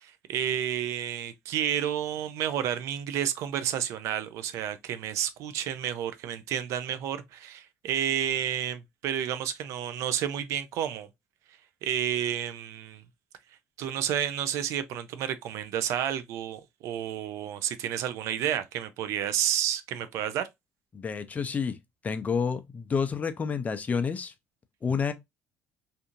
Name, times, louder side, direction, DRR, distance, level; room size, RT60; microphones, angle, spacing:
voice 1, 0.0-11.1 11.8-13.0 13.8-20.5, right 10 dB, 70° right, 0.4 m, -30 dB
voice 2, 20.9-21.8 22.0-24.3 24.8-25.1, left 6 dB, 30° left, 0.4 m, -29 dB
2.7 x 2.5 x 2.5 m
supercardioid pair, 95°, 5 cm